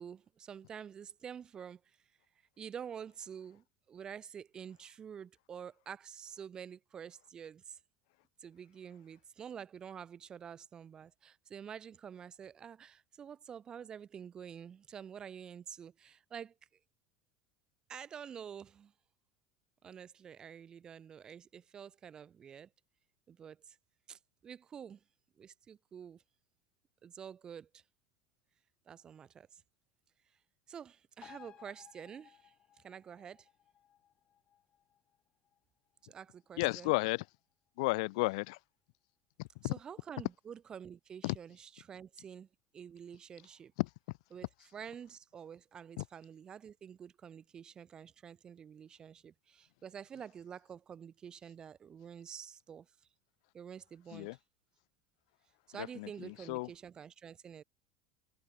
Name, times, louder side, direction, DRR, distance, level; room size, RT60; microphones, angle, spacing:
voice 1, 0.0-1.8 2.6-7.8 8.4-16.5 17.9-18.9 19.8-22.7 23.3-23.8 24.1-25.0 25.4-26.2 27.0-27.8 28.9-29.6 30.7-33.5 36.0-36.9 39.6-42.5 42.7-43.7 44.3-52.9 53.5-54.3 55.7-57.6, right 8 dB, 20° right, 2.1 m, -48 dB
sound 1, 31.2-38.2 38.5-38.6, left 10 dB, 25° left, 5.2 m, -61 dB
voice 2, 36.6-37.2 37.8-38.6 39.6-39.7 41.2-41.3 54.1-54.3 56.0-56.1 56.5-56.7, left 26 dB, 65° left, 0.9 m, -32 dB
cardioid pair, 170°, 4 cm